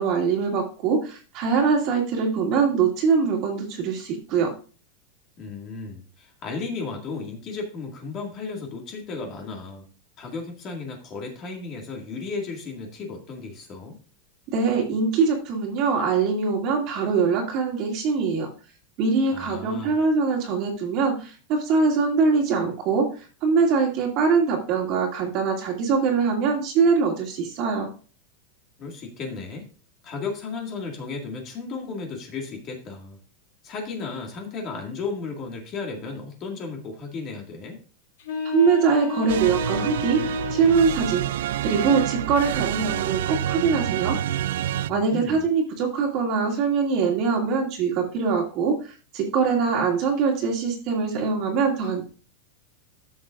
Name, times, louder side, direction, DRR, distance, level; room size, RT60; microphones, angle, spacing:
voice 1, 0.0-4.5 14.5-18.5 19.0-23.1 23.4-27.9 38.4-40.2 40.5-41.2 41.6-44.4 44.9-52.0, right 5 dB, 35° right, 1 dB, 2.2 m, -23 dB
voice 2, 5.4-9.8 10.2-14.0 19.3-20.0 28.8-29.7 30.0-33.2 33.6-37.8 44.9-45.5, left 4 dB, 25° left, 1 dB, 2.0 m, -34 dB
sound 1, 38.2-41.2, left 4 dB, 70° left, 3.7 m, -31 dB
sound 2, 39.3-44.9, right 12 dB, 75° right, 0.3 m, -28 dB
12.5 x 7.2 x 2.5 m, 0.38 s
supercardioid pair, 170°, 0 cm